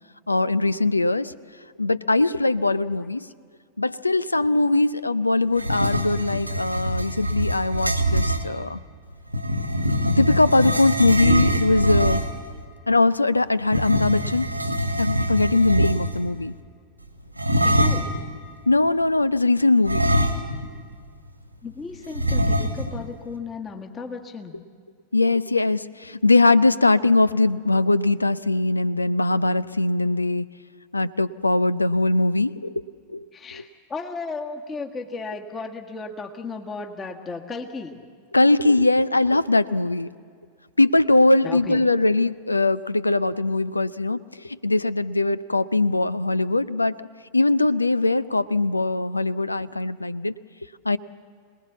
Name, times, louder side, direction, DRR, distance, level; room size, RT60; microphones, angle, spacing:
voice 1, 0.3-1.3 1.8-3.3 3.8-8.8 10.2-12.2 12.9-14.5 15.0-16.5 18.7-20.2 25.1-30.4 30.9-32.8 33.1-33.2 38.3-40.1 40.8-44.2 44.4-47.1 47.3-50.3 50.8-51.0, left 2 dB, 80° left, 19 dB, 0.5 m, -21 dB
sound 1, 5.5-8.5 9.3-12.5 13.6-16.3 17.4-18.2 19.8-20.8 21.1-21.2 22.2-23.0, equal, 90° right, 1.8 m, -23 dB
voice 2, 17.6-18.2 21.6-24.6 33.3-38.0 41.4-41.9, left 4 dB, 20° left, 4 dB, 1.6 m, -35 dB
26.5 x 19.5 x 7.1 m, 2.1 s
figure-of-eight pair, 90°, 0 cm